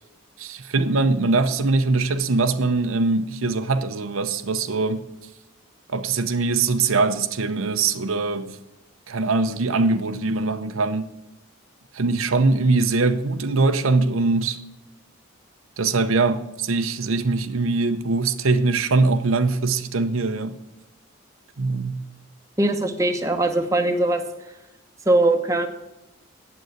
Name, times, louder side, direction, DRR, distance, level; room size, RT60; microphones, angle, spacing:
voice 1, 0.4-5.1 5.9-8.6 9.1-11.1 11.9-14.6 15.8-20.6 21.6-22.0, right 3 dB, 80° right, 0.7 m, -22 dB
voice 2, 22.6-24.2 25.1-25.7, right 2 dB, 15° right, 1.0 m, -20 dB
9.2 x 7.8 x 7.9 m
head